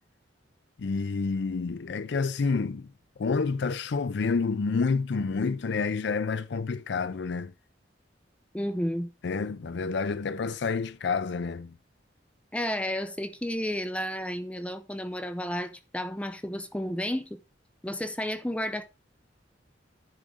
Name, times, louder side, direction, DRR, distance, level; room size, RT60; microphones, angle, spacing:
voice 1, 0.8-2.9 3.2-7.5 9.2-11.7, left 4 dB, 65° left, 0.5 m, -29 dB
voice 2, 8.5-9.1 12.5-17.4 17.8-18.8, equal, 5° left, 0.6 m, -32 dB
10.5 x 3.7 x 6.2 m
head